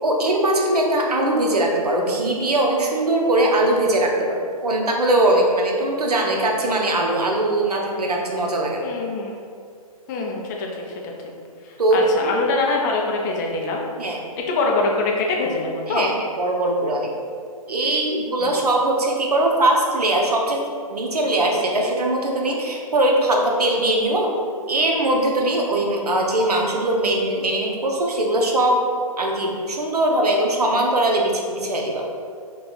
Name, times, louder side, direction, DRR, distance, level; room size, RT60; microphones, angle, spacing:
voice 1, 0.0-8.8 11.8-12.3 14.0-14.2 15.9-17.1 17.7-20.6 20.9-24.3 24.7-28.8 29.2-32.1, right 1 dB, 90° right, 0 dB, 0.6 m, -21 dB
voice 2, 8.8-9.4 10.1-11.1 11.7-13.8 14.5-16.1 18.4-18.5, left 3 dB, 30° left, 0 dB, 0.5 m, -24 dB
2.8 x 2.3 x 3.8 m, 2.2 s
hypercardioid pair, 130°, 19 cm